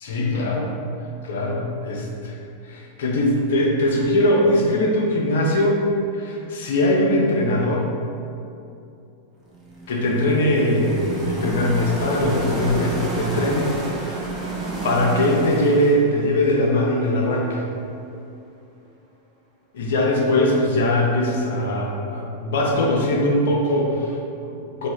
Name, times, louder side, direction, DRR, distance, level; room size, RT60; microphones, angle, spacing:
voice 1, 0.0-0.7 1.2-2.0 2.6-5.8 6.1-7.9 9.9-13.7 14.0-14.2 14.8-17.7 19.7-24.9, left 1 dB, 70° left, -1 dB, 0.7 m, -21 dB
sound 1, 9.5-17.6, right 2 dB, 25° right, 0.9 m, -30 dB
3.1 x 2.8 x 4.3 m, 2.6 s
hypercardioid pair, 100°, 0 cm